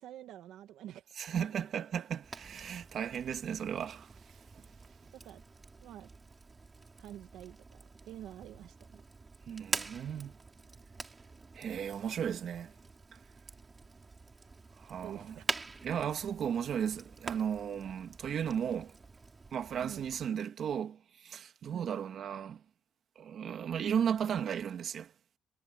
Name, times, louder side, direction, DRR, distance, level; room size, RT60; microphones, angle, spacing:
voice 1, 0.0-1.2 1.5-1.6 5.1-5.4 5.8-6.1 7.0-9.0 15.0-15.4 19.8-20.0 21.7-22.0, right 11 dB, 70° right, 1.5 m, -48 dB
voice 2, 1.2-4.6 9.5-10.3 11.5-12.7 13.1-13.2 14.8-15.4 15.8-19.0 19.5-22.6 23.2-25.1, right 8 dB, 45° right, 1.9 m, -35 dB
Fire, 2.2-20.3, right 3 dB, 20° right, 5.8 m, -45 dB
cardioid pair, 145°, 0 cm